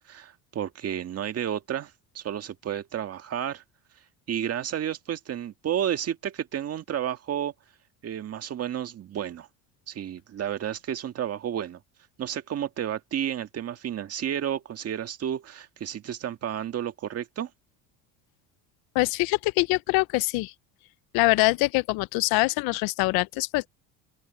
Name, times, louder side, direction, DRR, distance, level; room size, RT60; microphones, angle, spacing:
voice 1, 0.1-3.6 4.3-7.5 8.0-9.5 9.9-11.8 12.2-17.5, right 10 dB, 40° right, 1.8 m, -31 dB
voice 2, 18.9-20.5 21.1-23.7, left 23 dB, 75° left, 0.7 m, -24 dB
open air
cardioid pair, 115°, 36 cm